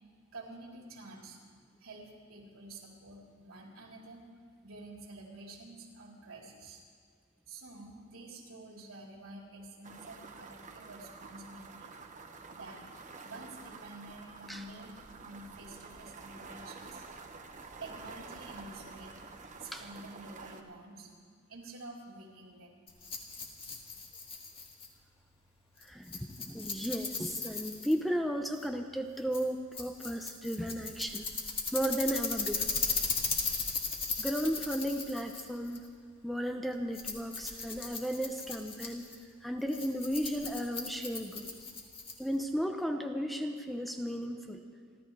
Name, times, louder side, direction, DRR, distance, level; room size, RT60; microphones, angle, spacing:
voice 1, 0.3-1.4 1.8-4.2 4.6-6.8 7.5-11.9 12.5-12.9 13.2-17.0 17.8-19.2 19.6-21.1 21.5-22.7, right 2 dB, 80° right, -2 dB, 3.8 m, -49 dB
sound 1, 9.8-20.6, right 4 dB, 35° right, 1.1 m, -49 dB
Rattle, 22.9-42.4, left 4 dB, 25° left, 2.1 m, -38 dB
voice 2, 25.8-31.3 31.7-32.6 34.2-35.8 36.2-39.1 39.4-41.5 42.2-44.6, equal, ahead, 4 dB, 0.7 m, -34 dB
29.5 x 13.0 x 3.3 m, 2.1 s
head